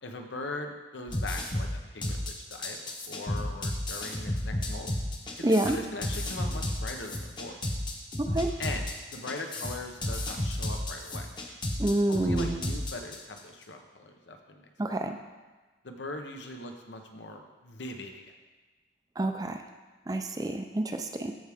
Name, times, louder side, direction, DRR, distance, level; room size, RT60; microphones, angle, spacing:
voice 1, 0.0-2.8 3.1-4.9 5.4-7.6 8.6-11.3 12.1-15.0 15.8-18.3, left 2 dB, 80° left, 4 dB, 0.9 m, -40 dB
sound 1, 1.1-13.4, left 1 dB, 25° left, 0.9 m, -32 dB
voice 2, 5.4-5.8 8.2-8.5 11.8-12.6 14.8-15.2 19.2-19.6 20.1-21.3, right 1 dB, 20° right, 6 dB, 0.4 m, -28 dB
13.5 x 4.7 x 3.6 m, 1.3 s
head